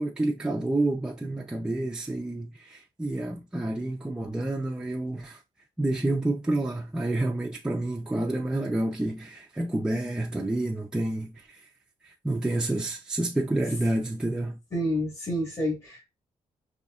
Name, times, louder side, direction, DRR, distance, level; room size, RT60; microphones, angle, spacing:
voice 1, 0.0-5.4 5.8-11.6 12.0-14.6, right 2 dB, 5° right, 0.4 m, -29 dB
voice 2, 14.7-16.0, equal, 25° left, 1.5 m, -29 dB
5.3 x 2.7 x 2.3 m
wide cardioid pair, 155°, 12 cm